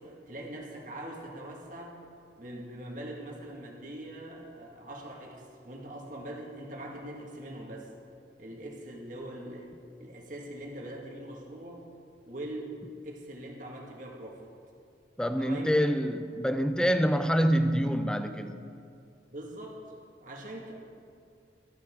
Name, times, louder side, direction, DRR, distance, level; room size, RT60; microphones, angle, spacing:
voice 1, 0.0-2.0 2.4-7.9 8.4-9.7 10.0-11.8 12.3-12.7 13.0-14.4 15.4-15.8 19.3-19.8 20.2-20.7, right 1 dB, 45° right, -1 dB, 1.8 m, -42 dB
voice 2, 15.2-18.6, equal, 5° left, 8 dB, 0.5 m, -26 dB
14.0 x 13.5 x 3.7 m, 2.4 s
head